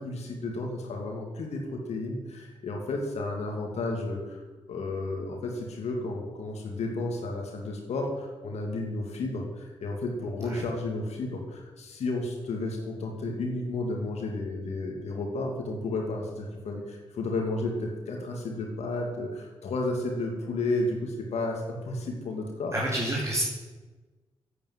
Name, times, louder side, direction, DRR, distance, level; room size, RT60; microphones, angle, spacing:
voice 1, 0.0-4.4 4.7-22.7, left 2 dB, 85° left, 1 dB, 2.5 m, -32 dB
voice 2, 22.7-23.4, right 1 dB, 25° right, -2 dB, 3.2 m, -29 dB
9.3 x 9.1 x 9.4 m, 1.3 s
cardioid pair, 60°, 11 cm